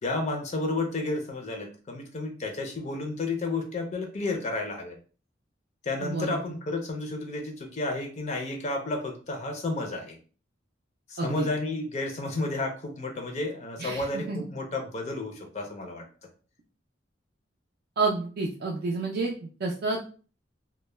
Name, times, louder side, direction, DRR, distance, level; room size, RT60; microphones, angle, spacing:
voice 1, 0.0-5.0 5.8-10.2 11.1-16.0, left 2 dB, 40° left, 3 dB, 0.4 m, -32 dB
voice 2, 6.0-6.4 11.2-11.5 13.8-14.4 18.0-20.1, right 3 dB, 55° right, -1 dB, 0.4 m, -29 dB
2.1 x 2.1 x 3.1 m, 0.39 s
head